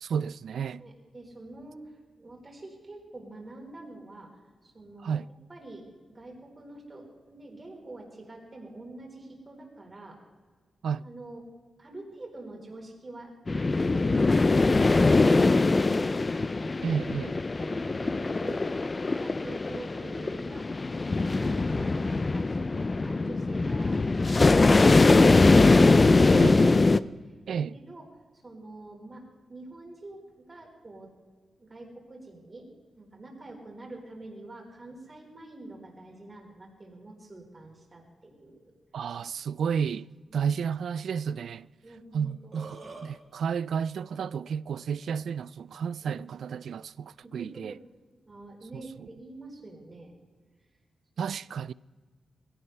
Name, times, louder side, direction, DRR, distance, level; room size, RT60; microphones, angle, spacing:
voice 1, 0.0-0.8 5.0-5.3 10.8-11.0 16.8-17.4 26.3-26.7 27.5-27.8 38.9-40.1 40.3-41.7 42.1-47.8 48.7-49.1 51.2-51.7, right 7 dB, 75° right, 0.3 m, -32 dB
voice 2, 0.8-1.8 2.2-4.3 4.6-5.8 6.1-10.2 11.0-11.4 11.8-16.6 17.6-20.6 20.9-24.0 27.5-28.0 28.4-29.2 29.5-31.1 31.6-32.7 33.0-38.7 40.3-40.5 41.8-42.9 46.0-46.3 47.2-47.6 48.3-50.1 51.2-51.3, right 2 dB, 25° right, 4.0 m, -46 dB
sound 1, 13.5-27.0, left 3 dB, 25° left, 0.4 m, -22 dB
Burping eructation, 42.3-43.1, right 3 dB, 50° right, 4.3 m, -44 dB
21.5 x 16.5 x 3.3 m
wide cardioid pair, 145°, 0 cm